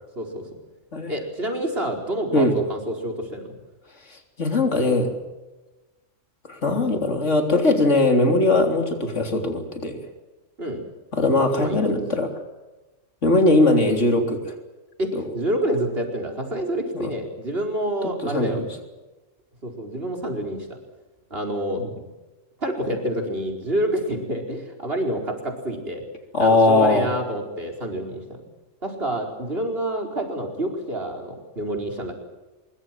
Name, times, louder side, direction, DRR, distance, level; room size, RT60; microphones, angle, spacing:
voice 1, 1.1-3.5 10.6-10.8 11.5-11.8 15.0-18.6 19.6-20.8 21.3-21.8 22.6-26.0 26.4-28.5 28.8-32.1, right 1 dB, 50° right, 3 dB, 5.0 m, -28 dB
voice 2, 4.4-5.1 6.5-10.0 11.1-12.3 13.2-14.5 15.1-15.2 16.9-17.1 18.2-18.7 21.8-21.9 26.3-27.1, left 2 dB, 70° left, 5 dB, 4.0 m, -20 dB
24.0 x 23.0 x 7.7 m, 1.1 s
omnidirectional pair, 1.3 m